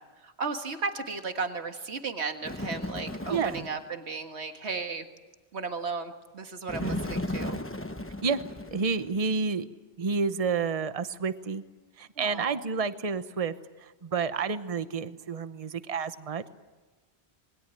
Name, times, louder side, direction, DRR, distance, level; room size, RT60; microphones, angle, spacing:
voice 1, 0.2-5.0 5.5-7.6 12.2-12.6, right 4 dB, 85° right, 6 dB, 1.9 m, -35 dB
Bird, 2.4-3.8 6.7-9.2, left 1 dB, 15° left, 1.0 m, -35 dB
voice 2, 3.3-3.7 6.8-7.0 8.2-8.4 8.7-9.7 10.0-11.6 12.0-13.5 13.8-16.5, right 5 dB, 35° right, 11 dB, 1.0 m, -30 dB
27.5 x 21.5 x 9.2 m, 1.2 s
omnidirectional pair, 1.1 m